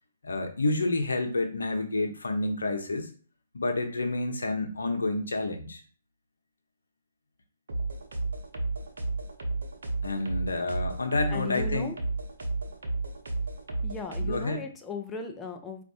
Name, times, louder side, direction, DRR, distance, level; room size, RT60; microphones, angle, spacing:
voice 1, 0.2-3.1 3.5-5.8 10.0-11.9 14.3-14.6, left 2 dB, 85° left, 5 dB, 0.8 m, -29 dB
sound 1, 7.7-14.5, right 3 dB, 75° right, 0.8 m, -32 dB
voice 2, 11.3-12.0 13.8-15.8, left 4 dB, 15° left, 4 dB, 0.6 m, -37 dB
4.4 x 2.6 x 2.7 m, 0.41 s
hypercardioid pair, 135°, 0 cm